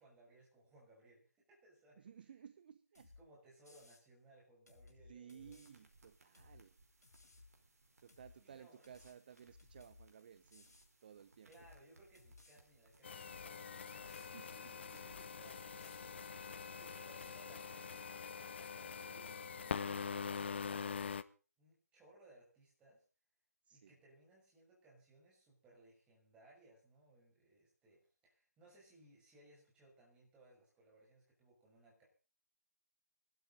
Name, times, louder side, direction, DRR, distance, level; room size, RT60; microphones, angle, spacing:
voice 1, 0.0-2.4 3.2-5.6 8.4-9.2 11.5-21.0 21.6-23.0 23.7-32.0, right 2 dB, 10° right, -3 dB, 6.0 m, -65 dB
voice 2, 2.0-3.1 5.1-6.7 8.0-10.7 11.0-11.5 14.2-15.2 23.7-23.9, right 8 dB, 35° right, 16 dB, 0.7 m, -58 dB
sound 1, 2.9-3.2 3.6-4.0 4.7-5.7 6.3-6.6 7.0-7.5 8.1-8.4 8.8-10.1 10.5-10.9 11.5-11.8 12.1-12.6 13.2-13.5 13.9-14.3 14.9-15.2 15.5-16.6, left 3 dB, 70° left, 5.3 m, -62 dB
sound 2, 5.4-16.3, right 2 dB, 60° right, 4.8 m, -70 dB
sound 3, 13.0-21.2, left 6 dB, 40° left, 0.8 m, -44 dB
23.5 x 12.5 x 4.0 m, 0.37 s
figure-of-eight pair, 150°, 9 cm